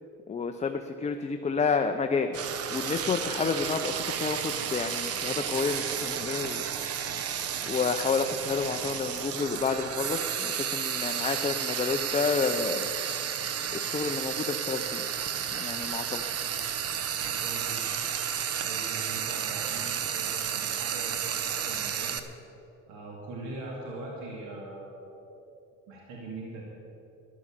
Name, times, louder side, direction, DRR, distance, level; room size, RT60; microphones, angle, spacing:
voice 1, 0.3-2.4 2.7-6.7 6.9-7.3 7.7-12.9 13.7-15.0 15.4-16.4, left 5 dB, 25° left, 6 dB, 0.6 m, -30 dB
Frying (food), 2.3-22.2, right 8 dB, 55° right, 1.0 m, -32 dB
voice 2, 16.3-16.7 17.2-18.1 18.6-22.6 22.9-25.3 25.9-26.7, right 2 dB, 85° right, -2 dB, 2.6 m, -42 dB
12.0 x 11.0 x 7.5 m, 2.8 s
cardioid pair, 125°, 29 cm